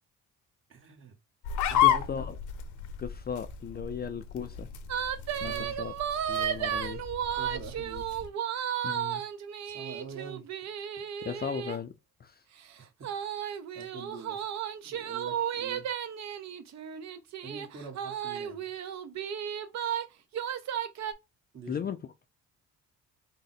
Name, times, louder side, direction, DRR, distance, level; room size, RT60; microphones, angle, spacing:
voice 1, 0.7-1.1 1.6-2.3 5.4-5.7 7.3-8.0 9.6-10.4 12.8-12.9 13.2-13.4 13.7-14.5 14.8-15.9 17.4-18.7 21.5-21.9, right 5 dB, 45° right, 1.4 m, -45 dB
sound 1, 1.4-8.3, left 11 dB, 80° left, 0.7 m, -32 dB
voice 2, 1.8-2.3 3.0-4.7 5.4-5.5 5.8-5.9 6.3-7.0 8.8-9.2 11.2-11.9 12.2-12.3 21.7-22.0, left 7 dB, 35° left, 0.4 m, -36 dB
sound 2, 4.9-11.8 13.0-20.0 20.3-21.1, right 9 dB, 60° right, 0.6 m, -34 dB
3.7 x 2.1 x 4.0 m
cardioid pair, 90°, 30 cm